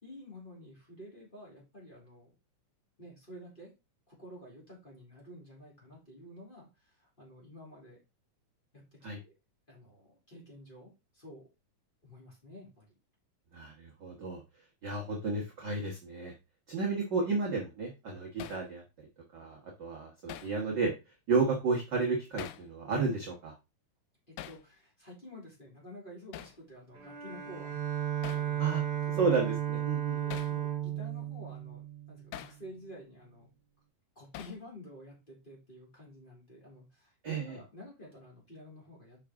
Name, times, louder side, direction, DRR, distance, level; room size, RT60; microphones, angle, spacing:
voice 1, 0.0-2.3 3.0-3.7 4.1-8.0 8.7-9.3 9.7-11.5 12.0-13.0 24.3-28.8 29.1-29.2 30.1-33.5 34.1-39.3, equal, 15° left, -3 dB, 2.7 m, -51 dB
voice 2, 13.5-14.4 14.8-16.3 16.7-18.8 19.3-20.9 21.3-23.5 28.6-28.8 29.2-30.2 37.2-37.6, right 4 dB, 55° right, -1 dB, 1.3 m, -32 dB
Hammer, 18.4-18.7 20.3-20.6 22.4-22.7 24.4-24.6 26.3-26.6 28.2-28.5 30.3-30.6 32.3-32.6 34.3-34.6, left 12 dB, 80° left, 2.1 m, -44 dB
Bowed string instrument, 26.9-32.5, right 11 dB, 85° right, 0.7 m, -34 dB
6.4 x 5.6 x 3.6 m, 0.26 s
omnidirectional pair, 3.9 m